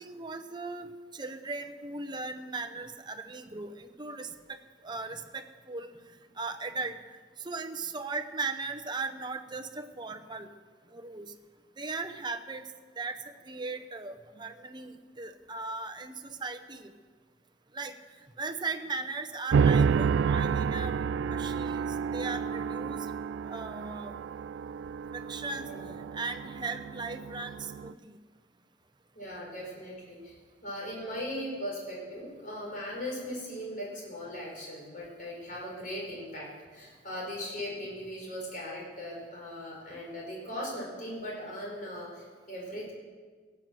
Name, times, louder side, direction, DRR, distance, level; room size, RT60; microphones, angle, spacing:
voice 1, 0.0-4.6 4.8-5.9 6.4-7.0 7.4-10.5 10.9-11.3 11.8-12.6 13.0-16.9 17.7-18.0 18.4-21.0 21.3-23.1 23.5-24.1 25.1-25.7 26.1-28.2, right 3 dB, 25° right, 7 dB, 0.7 m, -38 dB
sound 1, 19.5-27.9, right 6 dB, 75° right, 0.3 m, -30 dB
voice 2, 25.6-25.9 29.2-30.4 30.6-42.9, equal, 45° left, -3 dB, 5.2 m, -39 dB
17.0 x 7.7 x 7.6 m, 1.5 s
head